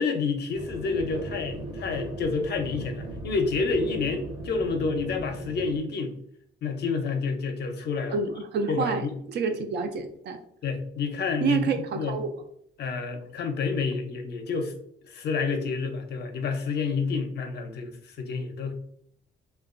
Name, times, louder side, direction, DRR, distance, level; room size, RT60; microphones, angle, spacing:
voice 1, 0.0-6.1 6.6-8.2 8.7-9.1 10.6-12.2 12.8-14.7 15.0-18.8, left 4 dB, 55° left, 5 dB, 0.5 m, -29 dB
sound 1, 0.5-5.8, right 1 dB, 25° right, 0.6 m, -38 dB
voice 2, 8.1-10.4 11.4-12.3, right 5 dB, 60° right, 7 dB, 0.4 m, -28 dB
2.8 x 2.2 x 2.4 m, 0.69 s
cardioid pair, 90°, 20 cm